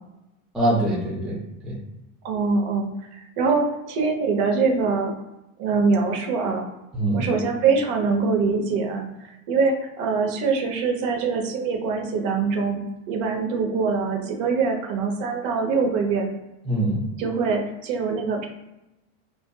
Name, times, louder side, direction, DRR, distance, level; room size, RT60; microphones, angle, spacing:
voice 1, 0.5-1.8 6.9-7.3 16.6-17.1, right 1 dB, ahead, -6 dB, 0.3 m, -24 dB
voice 2, 2.2-2.9 3.4-5.1 5.6-6.6 7.1-9.1 9.5-12.8 13.1-16.3 17.2-18.5, right 4 dB, 50° right, 2 dB, 0.7 m, -23 dB
2.6 x 2.4 x 2.2 m, 0.94 s
supercardioid pair, 120°, 42 cm